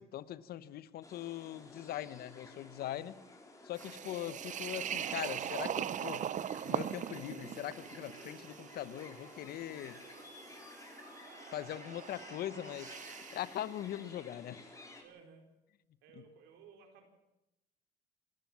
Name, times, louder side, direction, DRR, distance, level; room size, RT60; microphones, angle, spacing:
voice 1, 0.0-3.2 3.6-6.3 6.6-10.0 11.5-13.0 13.3-14.7, left 12 dB, 65° left, 16 dB, 1.0 m, -41 dB
sound 1, 1.0-15.0, left 2 dB, 20° left, 4.3 m, -53 dB
sound 2, 3.8-13.6, right 10 dB, 45° right, 0.7 m, -41 dB
voice 2, 15.0-15.4 16.0-17.1, right 6 dB, 85° right, 4 dB, 4.7 m, -57 dB
27.0 x 13.0 x 7.5 m, 0.92 s
cardioid pair, 110°, 17 cm